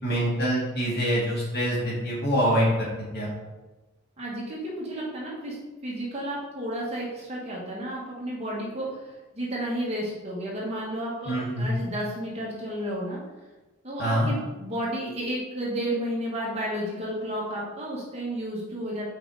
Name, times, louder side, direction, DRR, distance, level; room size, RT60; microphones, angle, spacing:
voice 1, 0.0-2.9 3.1-3.3 11.3-11.7 14.0-14.3, equal, 45° left, -5 dB, 1.9 m, -25 dB
voice 2, 4.2-13.2 13.8-19.0, right 1 dB, 30° right, -5 dB, 1.5 m, -32 dB
5.9 x 4.7 x 4.0 m, 1.1 s
head